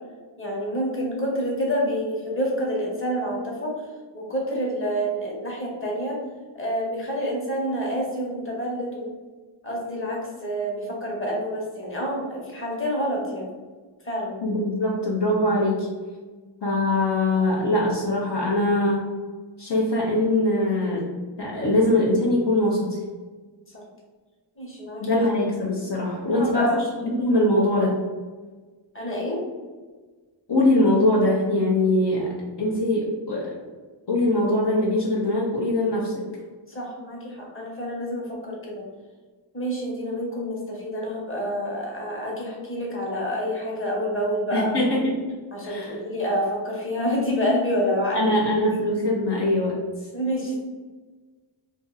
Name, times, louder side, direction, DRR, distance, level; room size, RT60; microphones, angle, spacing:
voice 1, 0.4-3.8 4.1-6.2 6.5-9.1 9.6-13.5 14.0-14.4 23.7-23.8 24.6-25.1 26.2-26.8 28.9-29.4 36.7-38.8 39.5-44.8 45.5-48.4 50.1-50.6, equal, 25° left, -3 dB, 1.1 m, -28 dB
voice 2, 14.4-15.9 16.6-19.1 19.6-21.1 21.4-23.0 25.0-26.8 27.0-27.9 30.5-33.6 34.1-36.2 44.5-45.2 45.6-45.9 48.1-49.8, left 1 dB, 60° left, -5 dB, 0.8 m, -22 dB
2.7 x 2.6 x 3.9 m, 1.4 s
wide cardioid pair, 60°, 47 cm